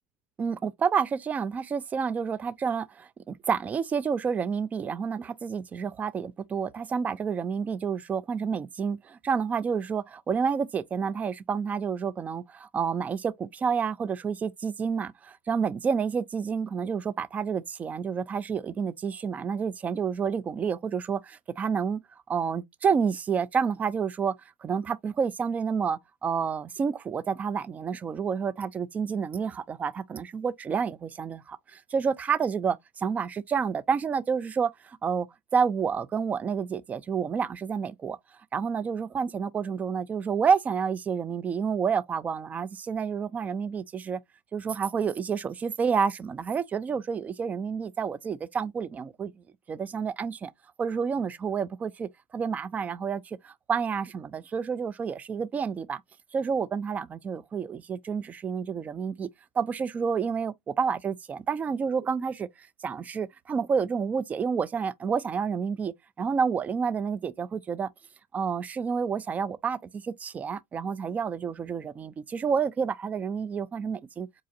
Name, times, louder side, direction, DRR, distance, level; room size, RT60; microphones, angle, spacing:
voice 1, 0.4-22.0 22.3-24.3 24.6-35.3 35.5-38.2 38.5-44.2 44.5-50.5 50.8-56.0 56.3-59.3 59.6-62.5 62.8-67.9 68.3-74.3, right 6 dB, 20° right, 0.3 m, -29 dB
4.9 x 2.4 x 2.6 m
supercardioid pair, 125°, 7 cm